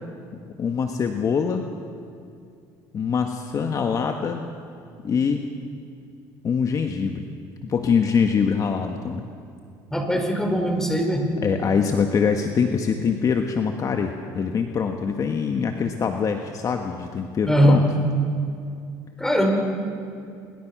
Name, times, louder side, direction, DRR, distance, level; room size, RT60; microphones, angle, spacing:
voice 1, 0.6-1.6 2.9-4.4 5.0-5.4 6.4-7.2 7.6-9.3 11.4-17.8, left 6 dB, 40° left, 5 dB, 1.6 m, -24 dB
voice 2, 9.9-11.3 17.5-17.9 19.2-19.5, equal, 5° left, 3 dB, 5.1 m, -20 dB
27.0 x 23.0 x 6.2 m, 2.5 s
supercardioid pair, 95°, 9 cm